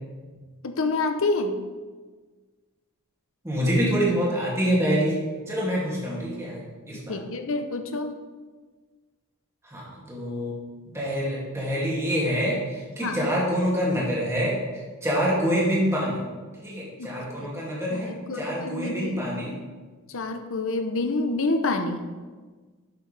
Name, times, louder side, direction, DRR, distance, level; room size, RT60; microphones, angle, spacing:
voice 1, 0.6-1.6 7.1-8.2 13.0-13.3 17.0-17.6 17.9-19.3 20.1-22.1, left 2 dB, 65° left, 7 dB, 0.8 m, -28 dB
voice 2, 3.4-5.1 5.5-7.2 9.6-10.6 10.9-16.2 16.6-19.5, equal, 15° right, -6 dB, 2.5 m, -26 dB
11.0 x 6.7 x 3.4 m, 1.4 s
head